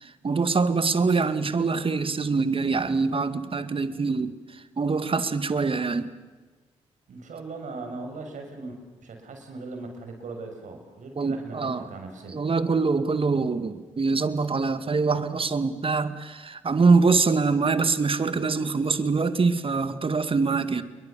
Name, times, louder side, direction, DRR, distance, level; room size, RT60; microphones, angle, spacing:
voice 1, 0.2-4.3 4.8-6.1 11.2-11.9 12.3-20.8, right 4 dB, 40° right, 2.1 m, -24 dB
voice 2, 7.1-12.4, right 3 dB, 65° right, 6.6 m, -39 dB
29.5 x 22.5 x 7.1 m
hypercardioid pair, 40°, 14 cm